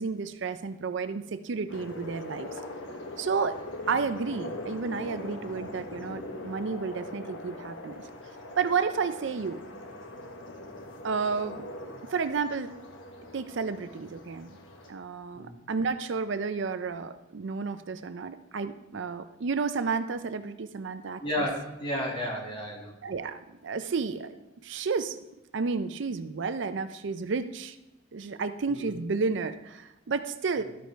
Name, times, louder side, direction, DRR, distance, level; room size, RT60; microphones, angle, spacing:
voice 1, 0.0-2.5 3.2-3.6 3.9-8.0 8.6-9.6 11.0-12.7 13.3-14.6 14.9-21.5 23.0-24.4 24.6-25.2 25.5-27.8 28.1-30.6, right 5 dB, 65° right, 10 dB, 0.5 m, -31 dB
sound 1, 1.7-14.9, left 1 dB, 70° left, 1.1 m, -42 dB
voice 2, 21.2-22.9 28.7-28.9 30.6-30.7, equal, 25° left, -2 dB, 2.1 m, -32 dB
13.0 x 5.1 x 4.5 m, 0.98 s
head